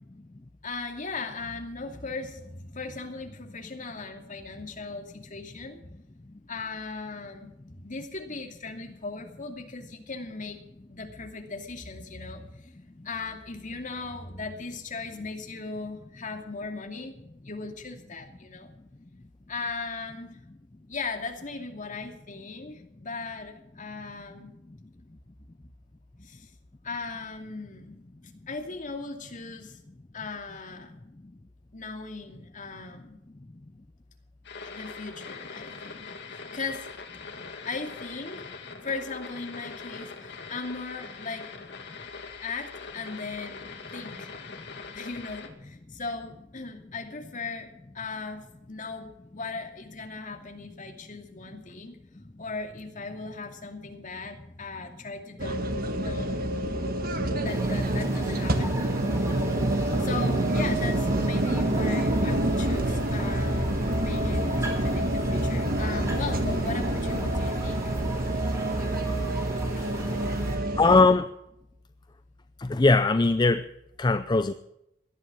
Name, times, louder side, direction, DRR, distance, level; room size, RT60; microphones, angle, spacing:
voice 1, 0.6-5.8 6.5-7.5 7.8-10.6 10.9-12.7 13.0-17.1 17.4-18.7 19.5-20.3 20.9-24.5 26.2-26.5 26.8-27.9 28.5-29.8 30.1-30.9 31.7-33.2 34.6-36.9 37.6-38.5 38.8-41.5 42.4-44.3 44.9-52.0 52.4-55.8 56.0-56.5 57.4-58.8 60.0-67.9 68.9-69.0 69.8-70.7, left 4 dB, 45° left, 4 dB, 2.5 m, -38 dB
sound 1, 34.4-45.5, left 4 dB, 65° left, 2.3 m, -42 dB
sound 2, 55.4-71.0, right 1 dB, 50° right, 1.6 m, -27 dB
sound 3, 57.5-70.6, right 1 dB, 15° right, 4.0 m, -36 dB
voice 2, 70.8-71.3 72.6-73.6 74.0-74.5, left 3 dB, 25° left, 11 dB, 0.5 m, -20 dB
17.5 x 12.0 x 6.1 m, 0.82 s
head